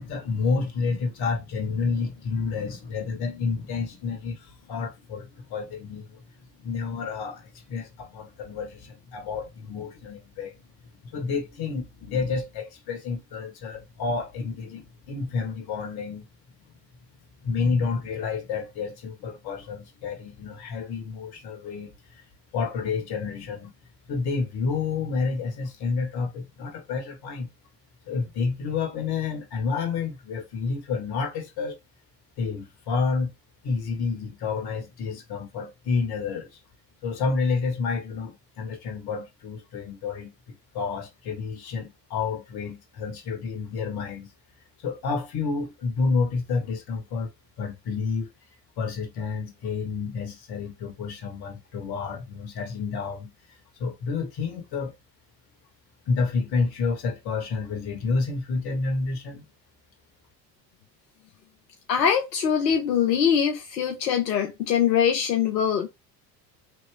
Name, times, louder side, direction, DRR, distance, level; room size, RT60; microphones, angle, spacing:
voice 1, 0.0-10.6 11.0-16.3 17.4-22.2 22.5-23.7 24.1-27.5 28.1-31.8 32.4-33.3 33.6-36.6 37.0-44.3 44.8-47.3 47.6-48.3 48.8-53.3 53.8-54.9 56.1-59.4, left 4 dB, 50° left, 1.6 m, -29 dB
voice 2, 61.9-65.9, left 8 dB, 80° left, 0.8 m, -23 dB
4.1 x 3.0 x 3.4 m
figure-of-eight pair, 65°, 50 cm